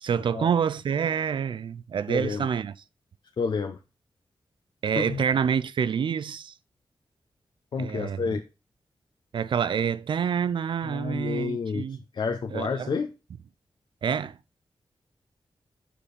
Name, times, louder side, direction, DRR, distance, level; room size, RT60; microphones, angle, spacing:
voice 1, 0.0-2.7 4.8-6.5 7.8-8.4 9.3-12.0 12.5-12.9 14.0-14.4, right 7 dB, 70° right, 0.4 m, -27 dB
voice 2, 2.1-2.5 3.4-3.8 5.0-5.2 7.7-8.4 10.8-13.1, left 5 dB, 65° left, 0.8 m, -30 dB
7.4 x 6.8 x 4.2 m
wide cardioid pair, 135°, 9 cm